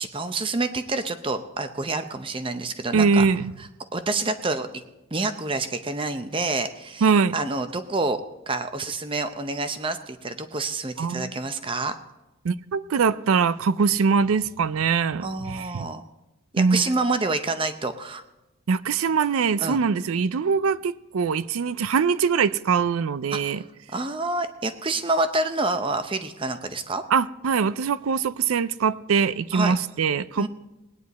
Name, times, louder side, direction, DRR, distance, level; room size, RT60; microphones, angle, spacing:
voice 1, 0.0-3.2 3.9-4.7 5.1-7.1 7.3-11.9 15.2-16.0 16.5-18.2 19.6-19.8 23.3-23.6 23.9-27.0 29.5-29.8 30.4-30.5, right 3 dB, 25° right, 0.6 m, -28 dB
voice 2, 2.9-3.5 7.0-7.3 11.0-11.3 12.4-15.9 16.6-16.8 18.7-23.6 27.1-30.5, right 5 dB, 75° right, 0.4 m, -22 dB
20.0 x 9.6 x 4.1 m
head